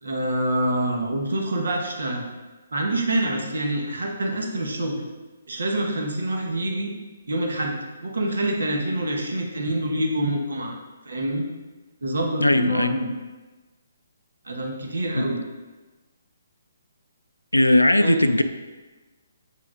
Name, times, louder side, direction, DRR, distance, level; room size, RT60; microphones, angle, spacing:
voice 1, 0.0-2.3 2.7-5.0 5.5-6.9 7.3-7.7 8.0-10.7 11.0-11.4 12.0-13.1 14.4-15.4 18.0-18.3, right 1 dB, 70° right, 1 dB, 1.1 m, -26 dB
voice 2, 12.4-12.9 15.1-15.2 17.5-18.4, left 1 dB, 90° left, 9 dB, 0.4 m, -18 dB
7.5 x 5.8 x 2.5 m, 1.2 s
figure-of-eight pair, 135°, 0 cm